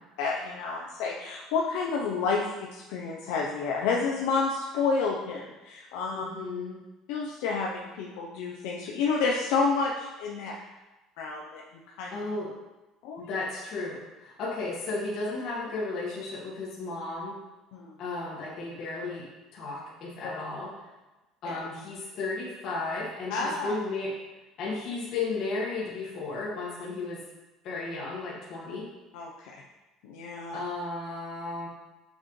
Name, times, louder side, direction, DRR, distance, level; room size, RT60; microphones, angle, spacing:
voice 1, 0.2-6.3 7.1-10.5 11.2-11.6 12.0-12.1 13.0-13.3 17.7-18.0 21.4-21.6 23.3-23.7 29.1-29.6 30.0-30.6, left 4 dB, 80° left, -1 dB, 0.7 m, -30 dB
voice 2, 6.1-6.8 10.5-10.7 12.1-12.5 13.2-17.4 18.0-19.2 19.5-20.7 21.4-24.1 24.6-27.2 27.6-28.8 30.5-31.7, left 3 dB, 45° left, -6 dB, 1.7 m, -34 dB
7.3 x 6.1 x 3.2 m, 1.1 s
cardioid pair, 170°, 0 cm